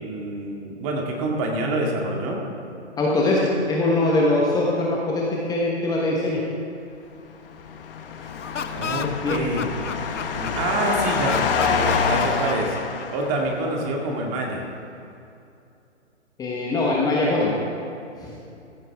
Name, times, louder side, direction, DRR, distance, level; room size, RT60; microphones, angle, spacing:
voice 1, 0.0-2.4 8.7-9.7 10.3-12.8 13.1-14.6, right 2 dB, 30° right, 0 dB, 2.1 m, -26 dB
voice 2, 3.0-3.4 3.7-6.4 9.0-9.5 16.4-17.5 18.2-18.3, left 2 dB, 10° left, -4 dB, 1.2 m, -22 dB
sound 1, 7.4-13.7, left 6 dB, 50° left, 1.3 m, -26 dB
Laughter, 8.3-10.8 11.2-13.3, left 6 dB, 85° left, 0.8 m, -32 dB
15.0 x 13.5 x 3.6 m, 2.6 s
hypercardioid pair, 135°, 35 cm